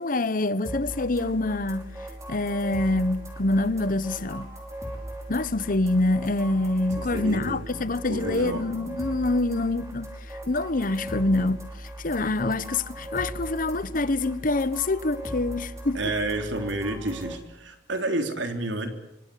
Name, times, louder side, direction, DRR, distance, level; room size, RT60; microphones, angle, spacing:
voice 1, 0.0-1.9 2.3-4.5 5.3-11.7 12.0-16.0, left 2 dB, 50° left, 1.1 m, -26 dB
sound 1, 0.6-17.3, right 1 dB, 15° right, 5.6 m, -38 dB
voice 2, 7.0-7.7 8.1-8.7 15.9-18.9, right 2 dB, 90° right, 3.6 m, -30 dB
25.0 x 24.5 x 8.5 m
head